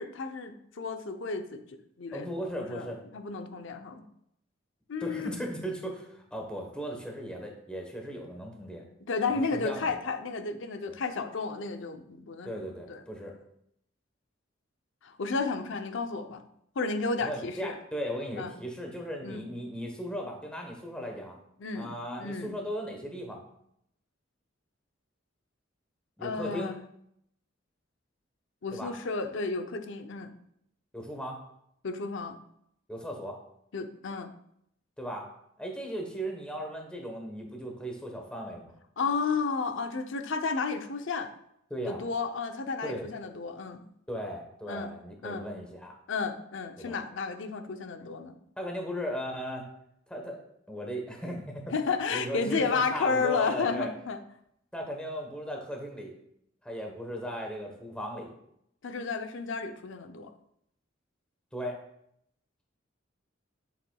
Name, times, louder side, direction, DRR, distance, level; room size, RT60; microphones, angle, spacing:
voice 1, 0.0-1.6 2.0-2.3 2.6-4.0 4.9-5.3 9.0-13.0 15.0-16.4 16.8-17.8 18.4-18.5 19.2-19.4 21.6-21.9 22.2-22.5 26.2-26.8 28.6-30.3 31.8-32.4 33.7-34.3 39.0-41.3 41.9-43.8 44.7-44.9 45.2-45.4 46.1-48.4 51.7-54.2 58.8-60.3, left 4 dB, 70° left, 7 dB, 0.6 m, -32 dB
voice 2, 2.1-3.0 5.0-8.9 9.3-10.0 12.4-13.3 17.2-21.4 21.7-23.4 26.2-26.7 28.7-28.9 30.9-31.4 32.9-33.4 35.0-35.3 35.6-38.7 41.7-42.0 42.8-43.1 44.1-45.9 46.8-47.0 48.6-49.7 50.1-50.4 50.7-51.7 52.1-53.9 54.7-56.1 56.6-58.3 61.5-61.8, equal, 5° left, 1 dB, 1.1 m, -37 dB
7.4 x 6.9 x 2.3 m, 0.74 s
head